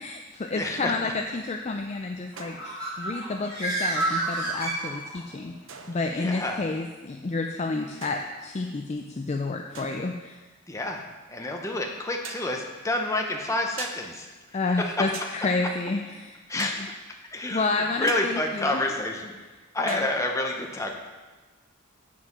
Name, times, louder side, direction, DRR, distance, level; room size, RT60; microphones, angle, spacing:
voice 1, 0.0-5.6 5.9-10.4 14.5-16.9 17.5-18.8 19.9-20.1, left 3 dB, 30° left, 3 dB, 0.4 m, -30 dB
voice 2, 0.5-0.9 6.1-6.6 10.7-11.0 11.3-14.3 14.8-15.1 16.5-16.8 17.3-17.7 18.0-19.4 19.7-20.9, left 2 dB, 15° left, 2 dB, 0.9 m, -28 dB
Bird, 2.3-5.4, right 2 dB, 20° right, 2.6 m, -30 dB
sound 1, 2.4-2.8 4.0-4.6 5.7-6.3 8.0-8.7 9.7-10.3 12.2-12.6 13.8-14.1 15.1-15.4 16.6-16.9 18.1-18.3 19.9-20.1, right 5 dB, 65° right, 0.7 m, -42 dB
7.5 x 6.1 x 6.0 m, 1.3 s
head